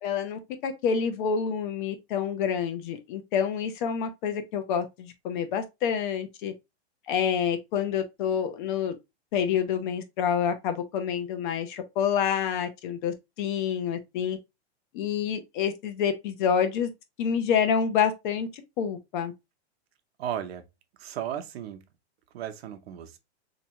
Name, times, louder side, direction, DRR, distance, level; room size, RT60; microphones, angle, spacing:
voice 1, 0.0-6.5 7.1-8.9 9.3-14.4 14.9-16.9 17.2-18.5 18.8-19.3, left 7 dB, 45° left, 0.8 m, -28 dB
voice 2, 20.2-20.7 21.0-21.8 22.3-23.2, right 10 dB, 65° right, 0.8 m, -35 dB
3.4 x 3.0 x 2.9 m
supercardioid pair, 155°, 34 cm